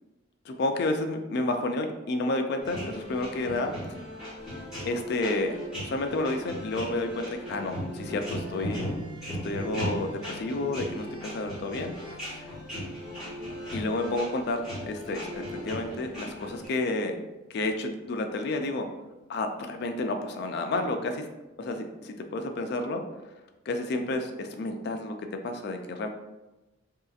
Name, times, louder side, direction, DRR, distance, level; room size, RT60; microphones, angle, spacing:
voice 1, 0.5-4.0 4.9-8.9 9.3-12.5 13.7-17.2 17.5-18.9 19.3-21.3 21.6-23.0 23.7-25.1 25.4-26.1, left 2 dB, 50° left, 5 dB, 0.3 m, -31 dB
sound 1, 2.6-16.7, equal, 5° right, 1.1 m, -37 dB
sound 2, 8.8-20.9, right 1 dB, 80° right, 1.2 m, -54 dB
3.1 x 2.8 x 2.3 m, 1.0 s
head